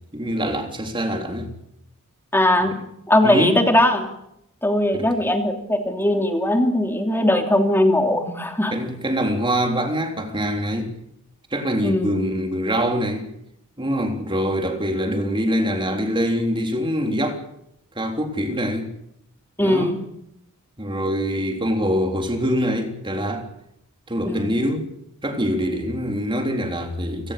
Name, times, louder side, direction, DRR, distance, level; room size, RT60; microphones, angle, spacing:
voice 1, 0.1-1.5 3.2-3.6 4.9-5.1 8.7-10.9 11.5-13.3 13.8-17.4 18.0-18.9 19.6-20.0 20.8-23.5 24.1-24.9 25.2-27.3, equal, 25° right, 3.5 m, -24 dB
voice 2, 2.3-2.8 3.1-4.1 4.6-8.7 11.8-12.1 19.6-20.0 24.2-24.6, left 1 dB, 10° left, 3.0 m, -19 dB
30.0 x 18.0 x 6.8 m
head